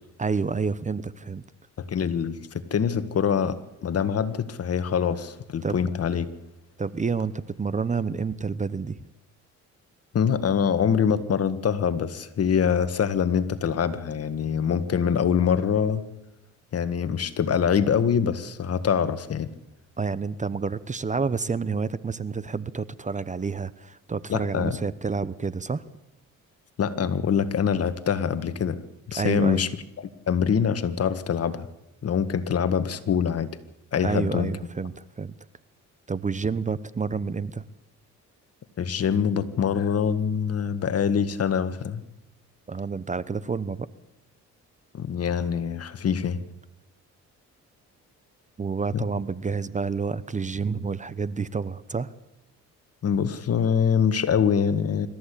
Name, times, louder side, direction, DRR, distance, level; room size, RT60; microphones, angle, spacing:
voice 1, 0.2-1.4 5.6-5.9 6.8-9.0 20.0-25.8 29.2-29.6 34.0-35.3 36.1-37.7 42.7-43.9 48.6-52.1, right 5 dB, 25° right, 17 dB, 0.9 m, -29 dB
voice 2, 1.8-6.3 10.1-16.0 16.7-19.5 24.3-24.8 26.8-28.8 29.1-29.7 30.3-31.7 32.0-33.5 33.9-34.5 38.8-42.0 44.9-46.4 48.9-49.0 53.0-55.1, left 7 dB, 55° left, 11 dB, 1.7 m, -24 dB
26.0 x 14.0 x 8.5 m, 0.90 s
cardioid pair, 90°, 30 cm